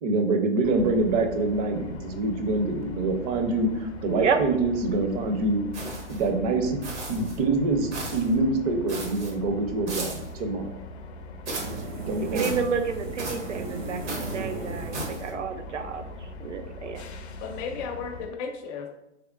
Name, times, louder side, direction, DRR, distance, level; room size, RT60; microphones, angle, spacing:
voice 1, 0.0-5.6 6.1-6.8 7.1-10.7 12.1-12.6, right 2 dB, 35° right, 5 dB, 0.5 m, -25 dB
sound 1, 0.6-18.3, left 2 dB, 65° left, 0.6 m, -41 dB
sound 2, 5.7-6.3 6.8-7.4 7.9-8.3 8.9-9.3 9.9-10.3 11.5-11.8 12.4-12.7 13.2-13.5 14.1-14.4 14.9-15.3, right 2 dB, 75° right, 1.3 m, -36 dB
sound 3, 11.5-16.2, right 3 dB, 60° right, 1.0 m, -37 dB
voice 2, 12.3-16.0 16.4-17.0, right 5 dB, 90° right, 7 dB, 0.6 m, -30 dB
voice 3, 17.4-18.9, left 5 dB, 20° left, 2 dB, 0.4 m, -34 dB
3.5 x 3.2 x 2.4 m, 0.87 s
hypercardioid pair, 120°, 35 cm